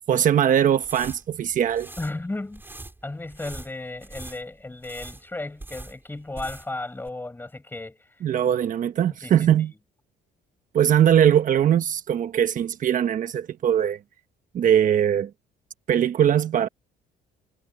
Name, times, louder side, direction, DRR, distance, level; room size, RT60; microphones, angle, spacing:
voice 1, 0.1-1.9 8.2-9.7 10.7-14.0 14.5-15.3 15.9-16.7, right 9 dB, 50° right, 1.2 m, -21 dB
sound 1, 0.7-6.8 7.1-7.2, right 2 dB, 10° right, 4.3 m, -43 dB
voice 2, 2.0-2.6 3.0-8.2 9.2-9.7, left 2 dB, 10° left, 4.8 m, -35 dB
cardioid pair, 110°, 17 cm